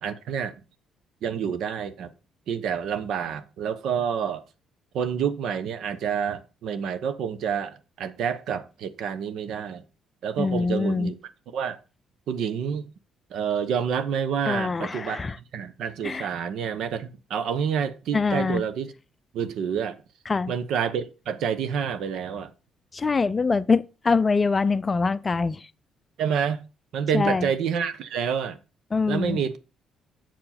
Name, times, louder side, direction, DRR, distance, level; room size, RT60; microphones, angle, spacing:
voice 1, 0.0-0.6 1.2-2.1 2.5-4.4 4.9-9.8 10.2-11.1 11.5-11.8 12.3-12.9 13.3-18.9 19.3-20.0 20.5-22.5 26.2-26.6 26.9-28.6 29.1-29.6, right 7 dB, 70° right, 0.8 m, -28 dB
voice 2, 10.4-11.1 14.5-15.4 16.0-16.3 18.1-18.6 20.3-20.5 22.9-25.6 27.1-27.5 28.9-29.4, left 4 dB, 30° left, 0.4 m, -24 dB
7.4 x 4.7 x 5.7 m
cardioid pair, 90°, 0 cm